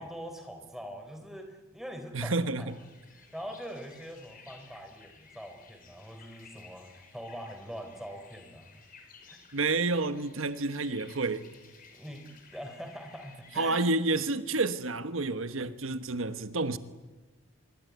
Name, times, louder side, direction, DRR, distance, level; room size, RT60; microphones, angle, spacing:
voice 1, 0.0-2.7 3.1-8.8 9.3-9.4 11.9-13.8, equal, ahead, 3.7 m, -43 dB
voice 2, 2.1-2.7 9.5-11.5 13.6-16.8, right 3 dB, 85° right, 1.3 m, -29 dB
sound 1, 2.7-13.8, left 5 dB, 45° left, 5.2 m, -56 dB
25.5 x 23.0 x 9.4 m
head